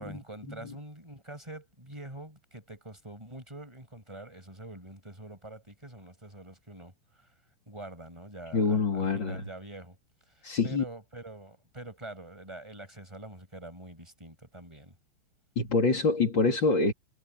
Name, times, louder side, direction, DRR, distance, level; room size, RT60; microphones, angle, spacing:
voice 1, 0.0-7.3 7.7-10.0 10.3-15.0, right 1 dB, 5° right, 5.8 m, -45 dB
voice 2, 8.5-9.4 10.4-10.8 15.5-16.9, left 4 dB, 30° left, 2.9 m, -26 dB
omnidirectional pair, 5.7 m